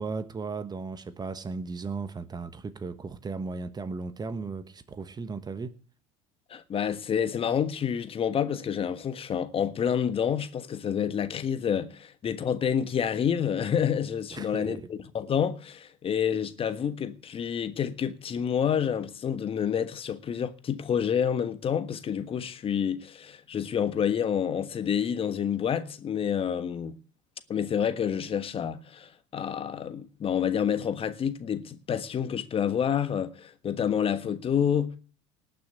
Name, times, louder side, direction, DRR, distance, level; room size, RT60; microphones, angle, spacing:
voice 1, 0.0-5.7 14.3-14.9, right 4 dB, 25° right, 1.3 m, -36 dB
voice 2, 6.5-27.0 27.5-35.0, left 8 dB, 35° left, 1.4 m, -28 dB
19.0 x 6.4 x 8.2 m
hypercardioid pair, 70°, 16 cm